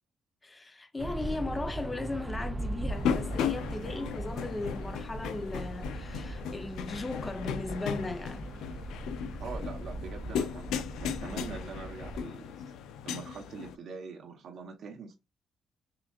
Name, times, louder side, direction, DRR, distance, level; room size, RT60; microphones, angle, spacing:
voice 1, 0.4-8.5, left 2 dB, 20° left, 0.7 m, -37 dB
sound 1, 1.0-12.2, right 1 dB, 25° right, 0.5 m, -39 dB
sound 2, 2.9-13.8, left 8 dB, 90° left, 0.5 m, -36 dB
voice 2, 9.4-12.7 13.0-15.1, right 5 dB, 70° right, 1.2 m, -43 dB
5.9 x 2.5 x 2.5 m
cardioid pair, 90°, 0 cm